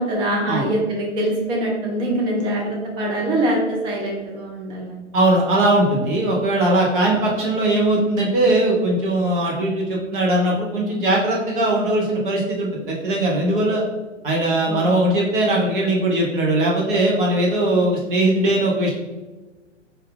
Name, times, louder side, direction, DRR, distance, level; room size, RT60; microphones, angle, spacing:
voice 1, 0.0-5.0 14.7-14.9 17.5-17.8, right 1 dB, 15° right, -2 dB, 0.5 m, -24 dB
voice 2, 5.1-13.8 14.2-18.9, right 1 dB, 45° right, -2 dB, 0.9 m, -20 dB
4.1 x 2.5 x 3.7 m, 1.2 s
figure-of-eight pair, 110°, 37 cm